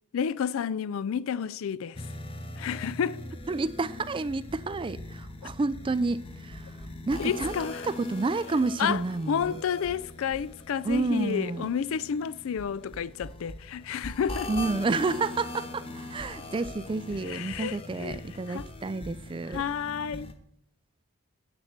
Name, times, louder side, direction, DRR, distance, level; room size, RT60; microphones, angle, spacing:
voice 1, 0.1-2.0 2.6-3.2 7.2-7.9 8.8-14.5 17.2-18.2 18.5-18.7 19.5-20.3, left 7 dB, 60° left, 0.3 m, -30 dB
sound 1, 1.9-20.3, left 2 dB, 25° left, 0.8 m, -41 dB
voice 2, 3.5-7.5 7.8-9.5 10.8-11.7 14.5-19.6, right 3 dB, 20° right, 0.3 m, -30 dB
8.0 x 7.3 x 6.5 m
head